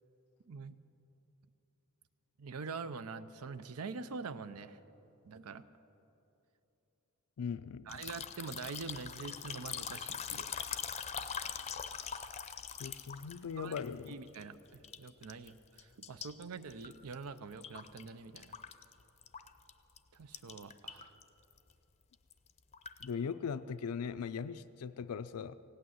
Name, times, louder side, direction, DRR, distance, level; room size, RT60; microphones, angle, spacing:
voice 1, 2.4-4.8 5.2-5.6 7.9-10.5 13.6-13.8 14.1-18.5 20.1-21.1, right 4 dB, 75° right, 13 dB, 0.6 m, -45 dB
voice 2, 7.4-8.0 12.8-14.2 23.0-25.5, left 6 dB, 80° left, 13 dB, 0.4 m, -39 dB
sound 1, 7.9-14.4 14.7-15.5 15.8-18.1 18.4-19.7 20.0-20.1 20.3-21.2 21.5-21.7 22.1-23.1, left 7 dB, 30° left, 0.6 m, -42 dB
17.0 x 8.8 x 9.2 m, 2.9 s
head